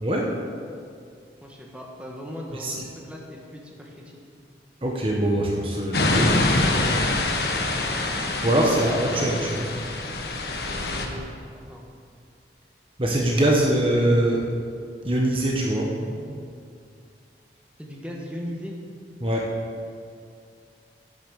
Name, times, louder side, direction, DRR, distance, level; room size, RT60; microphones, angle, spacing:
voice 1, 0.0-0.3 2.5-2.7 4.8-6.4 8.4-9.7 13.0-14.4 15.0-16.4 19.2-19.5, right 1 dB, 30° right, -1 dB, 1.2 m, -23 dB
voice 2, 1.4-4.2 8.5-9.5 10.5-11.3 11.5-11.8 13.3-13.4 17.8-18.8, equal, 5° right, -2 dB, 1.5 m, -38 dB
sound 1, 5.9-11.1, left 2 dB, 65° left, 1.3 m, -25 dB
10.5 x 10.0 x 6.4 m, 2.3 s
head